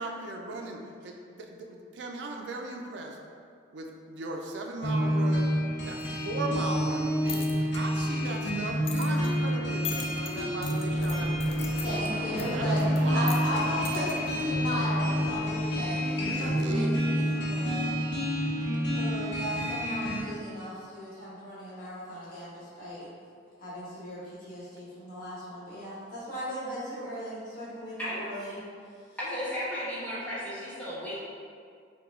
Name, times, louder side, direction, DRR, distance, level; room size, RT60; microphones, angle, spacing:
voice 1, 0.0-3.2 3.7-5.5 5.8-11.9 12.5-13.7 14.5-14.6 16.1-17.0 18.3-18.7, right 2 dB, 70° right, 2 dB, 0.4 m, -38 dB
sound 1, 4.8-20.2, equal, 80° left, 0.9 m, -28 dB
sound 2, 7.0-15.0, left 6 dB, 35° left, 0.3 m, -43 dB
Fixed-wing aircraft airplane, 10.8-16.4, equal, 15° right, 0.9 m, -42 dB
voice 2, 11.8-12.8 13.1-17.9 18.9-23.1 23.6-28.6, equal, 50° left, -10 dB, 1.5 m, -36 dB
voice 3, 29.2-31.2, equal, 10° left, -11 dB, 1.2 m, -34 dB
4.8 x 2.2 x 3.6 m, 2.2 s
head